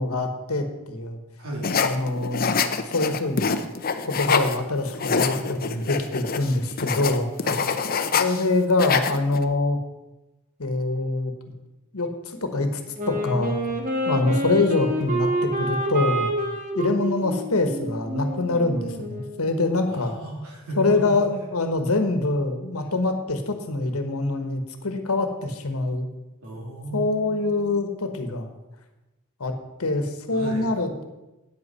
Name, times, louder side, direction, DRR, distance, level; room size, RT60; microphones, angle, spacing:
voice 1, 0.0-1.2 1.8-2.6 2.9-3.5 4.0-7.3 8.2-9.8 10.6-11.3 11.9-12.8 13.1-13.6 14.0-16.3 16.7-20.1 20.8-26.1 26.9-28.5 29.4-29.5 29.8-31.0, left 2 dB, 85° left, 7 dB, 1.3 m, -24 dB
voice 2, 1.4-1.7 7.4-7.7 19.9-21.2 26.4-28.1 30.3-30.7, right 1 dB, 90° right, -1 dB, 3.0 m, -35 dB
sound 1, 1.6-4.6 4.9-8.4 8.7-9.4, left 5 dB, 45° left, 0.6 m, -25 dB
Wind instrument woodwind instrument, 13.0-19.6, right 1 dB, 40° right, 1.4 m, -28 dB
9.0 x 8.3 x 5.5 m, 1.0 s
head